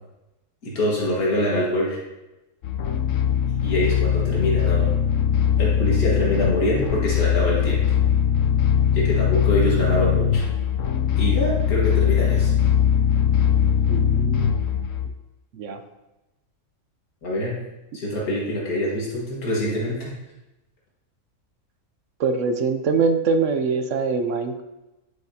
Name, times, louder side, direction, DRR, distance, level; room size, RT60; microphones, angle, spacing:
voice 1, 0.6-2.0 3.6-4.9 5.6-7.8 8.9-10.4 11.2-12.5 17.2-17.6 17.9-20.1, left 1 dB, 85° left, -5 dB, 2.2 m, -24 dB
sound 1, 2.6-15.1, left 8 dB, 65° left, 0.9 m, -21 dB
voice 2, 13.9-14.6 15.5-15.8 22.2-24.6, right 4 dB, 65° right, 7 dB, 0.9 m, -23 dB
10.0 x 6.6 x 2.8 m, 0.99 s
omnidirectional pair, 1.5 m